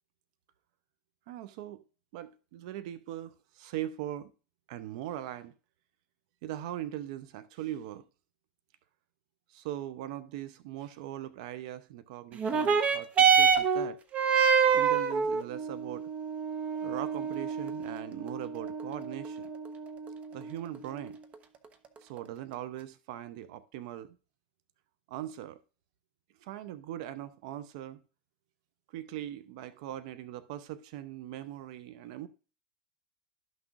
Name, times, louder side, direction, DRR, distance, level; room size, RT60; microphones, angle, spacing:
voice 1, 1.3-1.8 2.1-4.3 4.7-5.5 6.4-8.0 9.5-14.0 14.7-16.1 16.8-19.5 20.3-21.2 22.0-24.2 25.1-25.6 26.4-28.0 28.9-32.3, right 12 dB, 60° right, 0.6 m, -40 dB
sound 1, 12.4-21.3 22.2-22.3, right 6 dB, 35° right, 1.0 m, -27 dB
12.5 x 6.1 x 2.4 m
hypercardioid pair, 95°, 4 cm